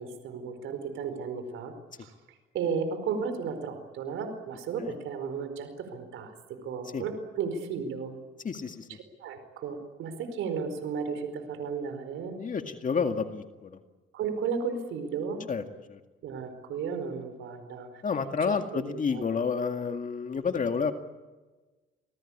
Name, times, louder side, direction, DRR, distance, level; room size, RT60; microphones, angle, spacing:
voice 1, 0.0-1.7 2.0-2.1 2.5-6.3 6.6-8.1 9.2-12.3 14.1-15.4 16.2-17.9 18.5-19.2, right 5 dB, 85° right, 8 dB, 4.6 m, -34 dB
voice 2, 8.4-8.9 12.4-13.8 15.5-15.6 15.9-16.0 18.0-20.9, left 5 dB, 40° left, 6 dB, 2.1 m, -30 dB
27.5 x 20.5 x 8.7 m, 1.2 s
cardioid pair, 90°, 20 cm